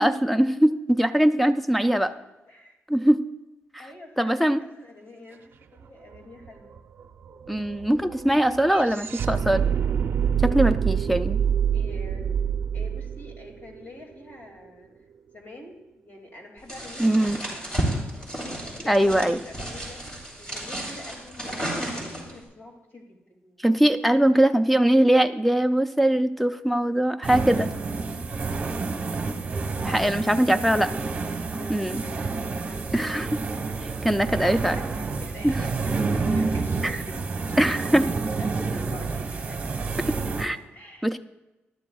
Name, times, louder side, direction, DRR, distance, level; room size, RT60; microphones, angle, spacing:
voice 1, 0.0-2.1 2.9-3.3 3.7-3.8 4.2-4.6 7.5-9.7 10.4-11.4 17.0-17.4 18.9-19.4 23.6-27.7 29.8-30.9 31.7-32.0 32.9-33.3 34.0-34.8 35.4-35.6 37.6-38.0 40.4-40.6 41.0-41.2, right 1 dB, ahead, 10 dB, 0.4 m, -21 dB
voice 2, 1.8-2.8 3.8-6.7 11.7-12.4 12.7-14.9 15.3-17.7 18.7-23.6 24.4-24.7 29.8-33.3 33.6-34.1 34.4-37.6 37.9-39.8 40.7-41.1, left 1 dB, 55° left, 2 dB, 2.3 m, -45 dB
sound 1, 5.8-5.9 6.1-14.3, right 8 dB, 60° right, 0.5 m, -27 dB
sound 2, 16.7-22.4, right 1 dB, 20° left, 2.9 m, -32 dB
sound 3, 27.2-40.5, right 4 dB, 30° right, 1.1 m, -29 dB
19.5 x 11.5 x 2.3 m, 1.0 s
wide cardioid pair, 160°, 4 cm